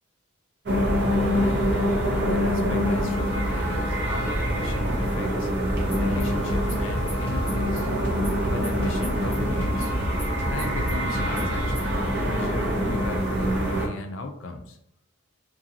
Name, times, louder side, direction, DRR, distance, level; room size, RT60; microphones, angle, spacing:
sound 1, 0.7-13.9, equal, 55° right, 0.6 m, -25 dB
voice 1, 1.3-5.5 6.0-7.9 8.5-9.9 10.5-14.8, left 3 dB, 65° left, 5 dB, 0.4 m, -36 dB
sound 2, 5.7-11.9, equal, 5° left, 1.2 m, -34 dB
2.9 x 2.6 x 2.8 m, 0.75 s
head